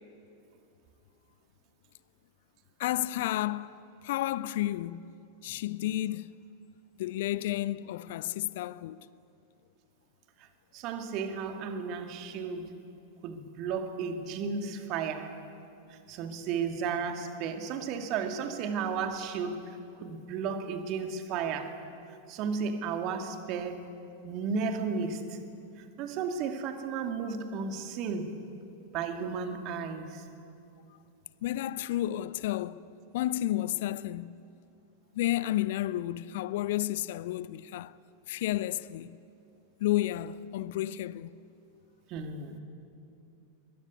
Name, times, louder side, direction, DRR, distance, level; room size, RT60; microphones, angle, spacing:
voice 1, 2.8-5.1 5.4-6.3 7.0-9.0 31.4-32.8 33.1-34.4 35.1-37.9 38.3-39.2 39.8-41.3, left 14 dB, 55° left, 0.6 m, -31 dB
voice 2, 10.7-12.7 13.2-15.4 15.9-21.8 22.3-23.9 24.2-25.4 25.8-28.4 28.9-30.2 42.1-42.6, right 5 dB, 40° right, 2.4 m, -34 dB
22.0 x 22.0 x 9.6 m
figure-of-eight pair, 90°, 0 cm